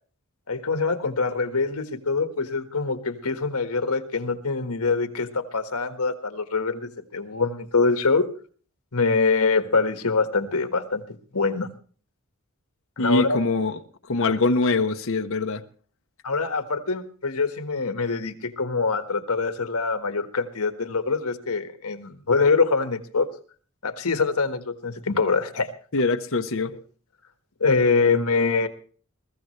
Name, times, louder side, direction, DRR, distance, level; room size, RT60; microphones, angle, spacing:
voice 1, 0.5-8.3 8.9-11.0 11.3-11.7 13.0-13.4 14.2-14.4 16.2-23.3 23.8-25.7 26.6-26.7 27.6-28.7, left 4 dB, 80° left, 1.6 m, -24 dB
voice 2, 13.0-13.8 14.1-15.6 25.9-26.7, left 3 dB, 60° left, 1.0 m, -23 dB
22.0 x 14.5 x 3.3 m
head